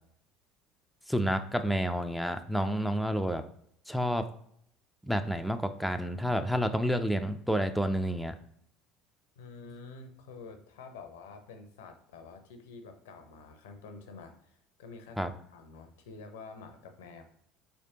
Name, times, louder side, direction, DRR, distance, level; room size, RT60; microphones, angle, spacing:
voice 1, 1.1-3.4 3.9-4.2 5.0-8.3 15.2-15.3, equal, ahead, 7 dB, 0.4 m, -29 dB
voice 2, 9.4-17.2, left 4 dB, 75° left, 7 dB, 0.5 m, -48 dB
4.2 x 3.3 x 2.8 m, 0.67 s
hypercardioid pair, 65°, 0 cm